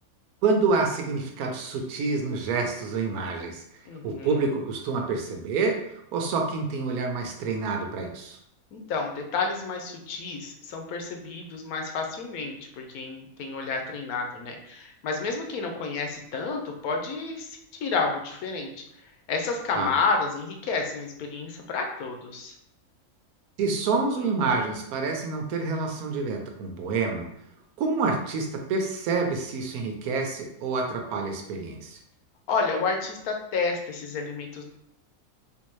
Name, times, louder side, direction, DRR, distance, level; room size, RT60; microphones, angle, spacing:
voice 1, 0.4-3.6 4.0-5.8 6.1-8.4 19.7-19.9 23.6-27.3 27.8-32.0, right 4 dB, 90° right, 3 dB, 1.1 m, -27 dB
voice 2, 3.9-4.4 8.7-18.8 19.3-22.5 32.5-34.6, left 4 dB, 85° left, 3 dB, 1.1 m, -30 dB
3.5 x 2.6 x 3.1 m, 0.77 s
omnidirectional pair, 1.5 m